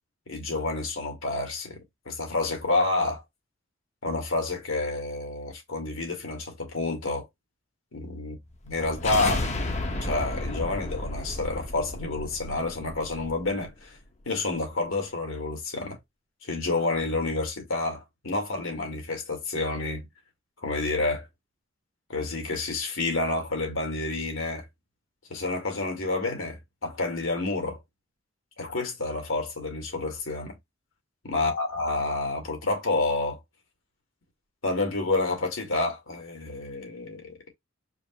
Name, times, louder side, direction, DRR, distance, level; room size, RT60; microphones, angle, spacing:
voice 1, 0.3-3.2 4.0-7.3 7.9-8.3 8.6-9.5 10.0-14.0 14.3-16.0 16.4-20.1 20.6-21.3 22.1-24.6 25.3-27.8 28.6-30.6 31.3-33.4 34.6-37.5, left 2 dB, 80° left, 1.9 m, -29 dB
sound 1, 8.6-13.7, left 2 dB, 35° left, 0.8 m, -32 dB
4.9 x 2.0 x 4.4 m
head